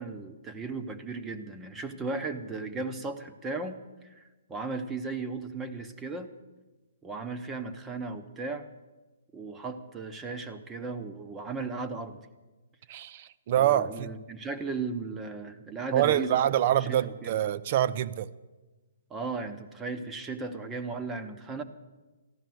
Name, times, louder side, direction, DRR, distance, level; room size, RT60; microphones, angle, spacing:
voice 1, 0.0-4.2 4.5-6.3 7.0-8.7 9.3-12.2 13.6-17.4 19.1-21.6, right 3 dB, 10° right, 8 dB, 0.9 m, -36 dB
voice 2, 12.9-14.1 15.9-18.3, right 11 dB, 40° right, 16 dB, 0.5 m, -26 dB
14.5 x 11.5 x 7.8 m, 1.2 s
hypercardioid pair, 155°, 0 cm